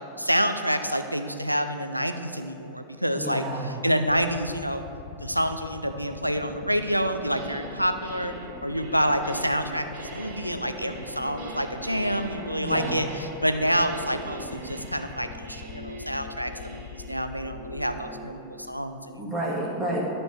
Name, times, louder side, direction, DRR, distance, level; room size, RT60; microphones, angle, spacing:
voice 1, 0.0-4.8 5.2-8.3 8.6-19.2, equal, 90° right, 8 dB, 0.5 m, -28 dB
voice 2, 3.1-3.7 12.6-13.0 19.2-20.0, right 1 dB, ahead, -7 dB, 2.1 m, -30 dB
sound 1, 4.2-18.1, left 8 dB, 55° left, 0.5 m, -42 dB
sound 2, 7.3-7.7 8.0-18.4, right 1 dB, 50° right, 1.9 m, -42 dB
11.0 x 4.4 x 6.6 m, 2.8 s
figure-of-eight pair, 90°, 0 cm